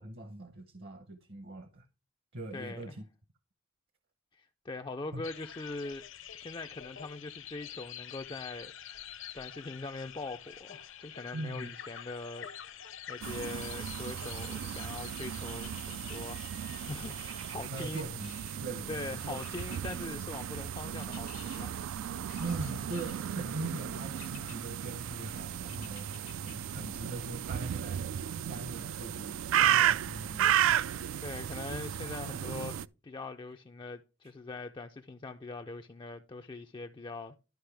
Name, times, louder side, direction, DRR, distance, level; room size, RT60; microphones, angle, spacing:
voice 1, 0.0-1.8 2.3-3.0 5.1-5.2 11.3-11.7 17.7-19.4 22.4-26.1 26.4-28.0 28.4-30.7, right 2 dB, 50° right, 0.8 m, -41 dB
voice 2, 2.5-3.0 4.3-6.0 6.3-16.5 16.7-18.1 18.9-21.9 31.2-37.4, left 3 dB, 20° left, 0.4 m, -42 dB
sound 1, 5.2-17.5, left 9 dB, 65° left, 0.8 m, -47 dB
sound 2, 13.2-13.9 15.5-16.2 17.8-18.7 19.4-20.0 21.0-21.6 22.3-23.2 24.2-24.6 25.7-26.5 27.0-27.1, left 11 dB, 85° left, 1.1 m, -52 dB
sound 3, 13.2-32.9, right 10 dB, 70° right, 0.3 m, -34 dB
12.0 x 5.3 x 3.3 m
head